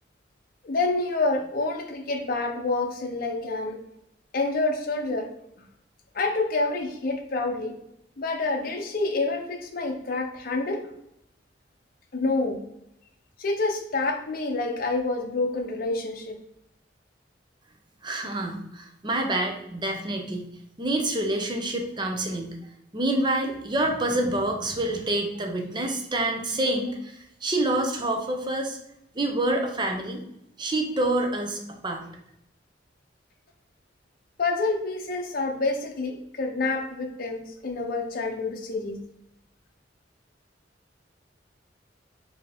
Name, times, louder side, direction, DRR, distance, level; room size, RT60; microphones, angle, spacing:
voice 1, 0.6-3.8 4.3-5.3 6.1-7.7 8.2-10.8 12.1-12.6 13.4-16.4 34.4-39.0, left 3 dB, 50° left, 3 dB, 0.6 m, -27 dB
voice 2, 18.0-20.5 20.8-22.6 22.9-28.8 29.1-30.2 30.6-32.1, right 1 dB, 25° right, 3 dB, 0.6 m, -27 dB
4.4 x 2.8 x 3.4 m, 0.80 s
head